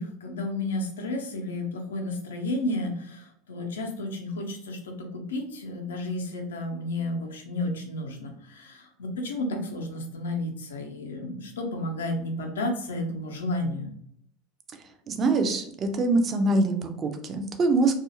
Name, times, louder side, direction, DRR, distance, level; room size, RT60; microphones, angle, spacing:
voice 1, 0.0-13.9, left 1 dB, 75° left, 3 dB, 0.6 m, -32 dB
voice 2, 15.1-18.0, right 2 dB, 30° right, 6 dB, 0.5 m, -24 dB
2.6 x 2.4 x 2.8 m, 0.70 s
figure-of-eight pair, 75°, 0 cm